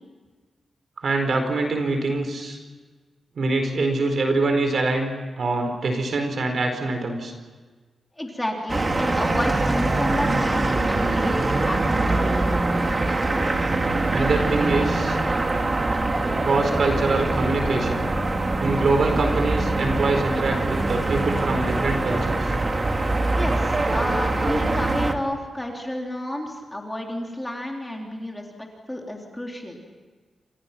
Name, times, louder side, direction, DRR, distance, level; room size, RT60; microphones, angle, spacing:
voice 1, 1.0-2.6 3.3-5.1 5.4-7.3 14.1-15.2 16.4-18.1 18.6-22.5, right 3 dB, 50° right, 5 dB, 4.3 m, -24 dB
voice 2, 8.2-12.6 23.3-28.5 28.9-29.8, left 1 dB, 10° left, 0 dB, 3.5 m, -30 dB
sound 1, 8.7-25.1, right 2 dB, 25° right, 2.0 m, -23 dB
29.0 x 27.5 x 5.9 m, 1.4 s
wide cardioid pair, 165°, 0 cm